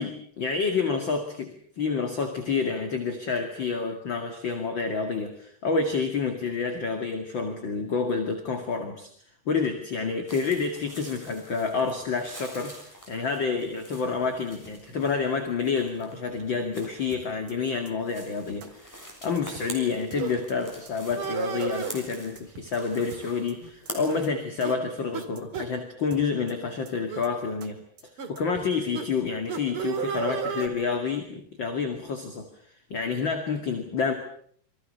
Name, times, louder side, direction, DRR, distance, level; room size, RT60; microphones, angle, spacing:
voice 1, 0.0-1.5 1.8-9.1 9.5-32.5 32.9-34.1, left 5 dB, 35° left, 5 dB, 2.7 m, -29 dB
sound 1, 10.3-24.3, equal, 5° left, 6.9 m, -46 dB
sound 2, 17.1-17.5 17.9-18.0 18.2-18.3 18.6-18.7 19.0-19.1 19.4-19.8 20.1-20.5 20.9-21.0 21.2-21.3 21.6-21.7 22.0-22.1 22.4-22.8 23.1-23.5 23.9-24.0 24.2-24.3 24.6-24.7 25.0-25.1 25.4-25.8 26.1-26.5 26.9-27.0 27.2-27.3 27.6-27.7 28.0-28.1 28.4-28.8, right 4 dB, 70° right, 3.9 m, -47 dB
sound 3, 20.1-20.4 21.1-22.0 22.9-23.3 23.6-23.7 24.1-24.3 24.6-24.8 25.1-25.3 25.5-25.7 26.4-26.6 27.1-27.3 28.2-28.3 28.9-29.1 29.5-30.7, right 6 dB, 40° right, 3.1 m, -32 dB
28.5 x 24.0 x 6.8 m, 0.62 s
omnidirectional pair, 3.9 m